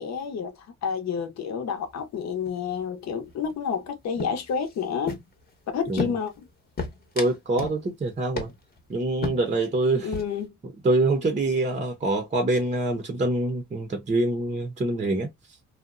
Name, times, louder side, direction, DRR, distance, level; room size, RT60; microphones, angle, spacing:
voice 1, 0.0-5.2 5.7-6.5 10.0-10.6, left 6 dB, 60° left, 0.8 m, -30 dB
sound 1, 1.8-2.2 2.5-2.8 3.1-3.9 4.2-5.5 6.0-6.4 6.8-7.8 8.1-8.2 8.4-8.8 9.2-9.7 10.0-10.4, left 4 dB, 30° left, 0.9 m, -34 dB
voice 2, 7.2-8.5 8.9-10.1 10.8-15.3, right 2 dB, 25° right, 0.6 m, -25 dB
2.7 x 2.1 x 2.4 m
cardioid pair, 90°, 30 cm